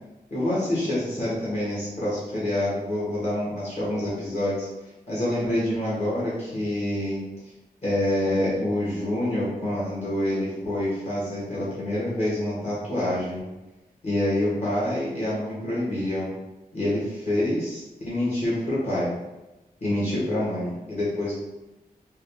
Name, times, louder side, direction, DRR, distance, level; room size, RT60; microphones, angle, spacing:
voice 1, 0.3-4.7 5.1-7.2 7.8-13.5 14.0-16.3 16.7-19.1 19.8-21.3, left 1 dB, 45° left, -9 dB, 1.2 m, -26 dB
3.8 x 2.2 x 3.4 m, 1.0 s
wide cardioid pair, 115°, 16 cm